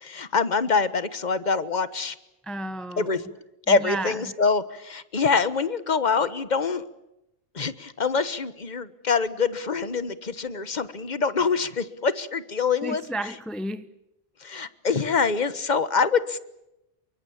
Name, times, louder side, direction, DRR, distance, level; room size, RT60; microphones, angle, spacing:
voice 1, 0.0-2.1 3.0-3.2 3.7-6.8 7.5-13.3 14.4-16.4, left 5 dB, 40° left, 1.4 m, -25 dB
voice 2, 2.4-3.1 3.7-4.2 12.8-13.9, right 1 dB, ahead, 0.9 m, -32 dB
28.5 x 24.0 x 7.3 m
omnidirectional pair, 1.1 m